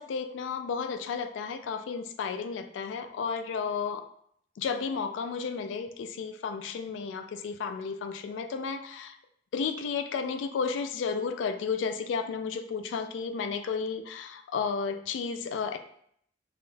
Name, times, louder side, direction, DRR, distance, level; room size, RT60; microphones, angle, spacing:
voice 1, 0.0-4.0 4.6-9.2 9.5-15.8, left 5 dB, 80° left, 9 dB, 0.3 m, -33 dB
3.4 x 2.6 x 2.3 m, 0.67 s
head